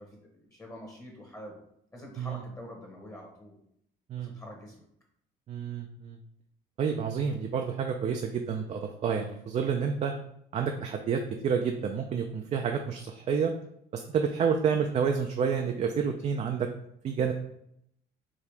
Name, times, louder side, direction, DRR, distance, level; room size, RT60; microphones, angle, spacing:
voice 1, 0.0-1.6 1.9-3.6 4.2-4.8, equal, 20° left, -1 dB, 1.1 m, -46 dB
voice 2, 5.5-6.2 6.8-10.1 10.5-13.5 13.9-16.7 17.0-17.3, right 6 dB, 40° right, 4 dB, 0.4 m, -29 dB
4.7 x 2.8 x 3.4 m, 0.73 s
cardioid pair, 110°, 17 cm